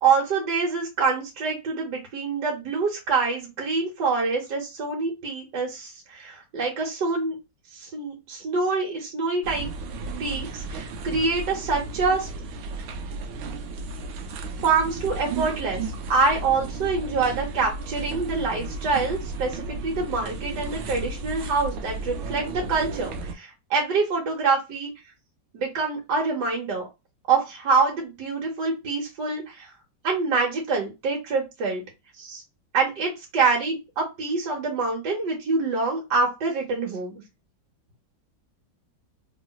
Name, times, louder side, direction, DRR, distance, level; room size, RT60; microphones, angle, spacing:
voice 1, 0.0-7.3 7.7-9.7 10.2-12.3 14.6-15.8 16.1-24.9 25.5-26.8 27.3-29.7 30.0-31.8 32.2-32.4 32.7-37.2, right 4 dB, 65° right, -2 dB, 1.4 m, -25 dB
sound 1, 9.4-23.3, right 3 dB, 85° right, 1.4 m, -34 dB
3.0 x 2.9 x 2.3 m, 0.24 s
omnidirectional pair, 2.1 m